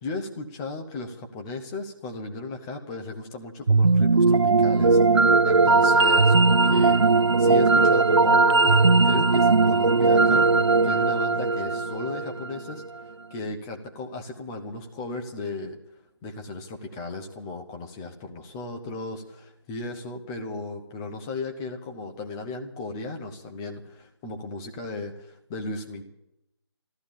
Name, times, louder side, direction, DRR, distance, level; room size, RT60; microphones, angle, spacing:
voice 1, 0.0-12.8 13.3-15.8 16.2-26.0, left 3 dB, 10° left, 3 dB, 0.7 m, -36 dB
sound 1, 3.7-12.8, right 3 dB, 70° right, 0.6 m, -19 dB
14.0 x 13.5 x 7.1 m, 0.83 s
figure-of-eight pair, 160°, 15 cm